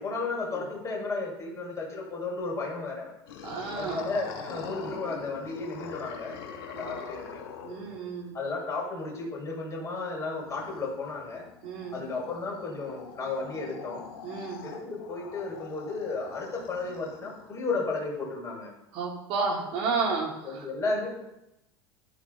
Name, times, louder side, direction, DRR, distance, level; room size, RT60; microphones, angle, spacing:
voice 1, 0.0-3.1 3.8-6.4 6.7-7.4 8.3-11.4 11.9-14.0 14.6-18.7 20.4-21.2, left 3 dB, 20° left, -3 dB, 6.1 m, -33 dB
sound 1, 3.3-8.3 10.4-17.6, left 6 dB, 60° left, 2.7 m, -44 dB
voice 2, 3.4-4.1 6.7-7.0 7.6-8.3 11.6-12.0 14.2-14.7 18.9-20.7, right 4 dB, 45° right, -3 dB, 4.4 m, -32 dB
14.0 x 12.0 x 4.2 m, 0.88 s
figure-of-eight pair, 80°, 14 cm